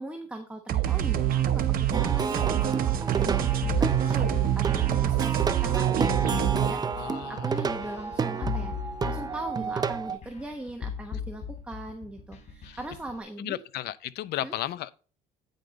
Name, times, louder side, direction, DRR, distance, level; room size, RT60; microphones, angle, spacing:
voice 1, 0.0-13.6 14.4-14.6, right 1 dB, 5° right, 1.1 m, -39 dB
sound 1, 0.7-6.7, right 11 dB, 60° right, 0.9 m, -25 dB
Plucked string instrument, 1.9-10.2, right 6 dB, 25° right, 0.5 m, -31 dB
sound 2, 3.6-13.1, left 7 dB, 45° left, 3.4 m, -37 dB
voice 2, 7.0-7.7 12.6-12.8 13.4-14.9, left 14 dB, 75° left, 0.6 m, -34 dB
9.2 x 5.3 x 4.0 m
cardioid pair, 110°, 17 cm